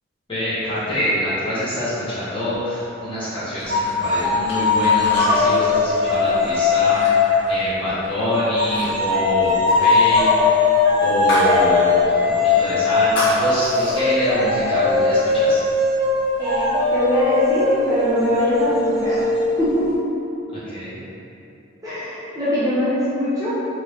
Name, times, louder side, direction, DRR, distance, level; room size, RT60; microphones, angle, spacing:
voice 1, 0.3-7.1 7.5-10.3 11.0-15.6 20.6-21.0, left 1 dB, 25° left, -13 dB, 1.3 m, -25 dB
sound 1, 3.6-8.2 8.5-8.9 9.1-11.6 11.9-12.0 12.5-14.0, left 1 dB, 75° left, 1.0 m, -31 dB
sound 2, 3.7-7.6 8.6-19.9, left 3 dB, 65° right, 1.1 m, -19 dB
voice 2, 16.4-19.2 19.6-19.9 21.8-23.5, left 1 dB, 20° right, -12 dB, 0.7 m, -22 dB
3.5 x 3.3 x 3.1 m, 2.9 s
head